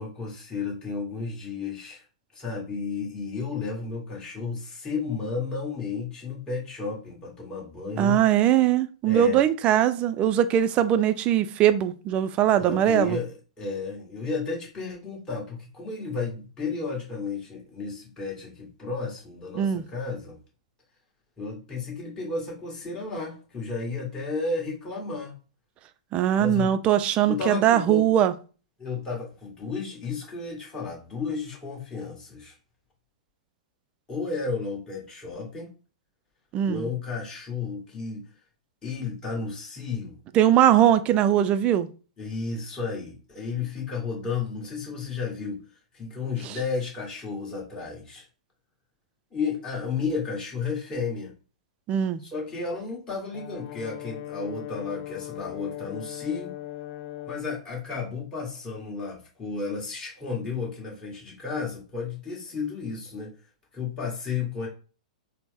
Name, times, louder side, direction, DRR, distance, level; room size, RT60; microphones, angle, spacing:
voice 1, 0.0-2.0 2.3-8.2 9.0-9.4 12.6-20.4 21.4-25.3 26.4-26.7 27.3-28.1 28.8-32.5 34.1-35.7 36.6-38.3 38.8-40.2 42.2-45.6 45.9-48.3 49.3-51.3 52.2-56.5 57.3-63.3 63.7-64.7, left 4 dB, 20° left, 1.7 m, -33 dB
voice 2, 8.0-13.2 19.6-19.8 26.1-28.3 36.5-36.9 40.3-41.9 46.4-46.6 51.9-52.2, right 10 dB, 30° right, 0.4 m, -21 dB
Brass instrument, 53.3-57.5, left 14 dB, 45° left, 0.5 m, -39 dB
4.1 x 2.1 x 3.4 m
figure-of-eight pair, 110°, 4 cm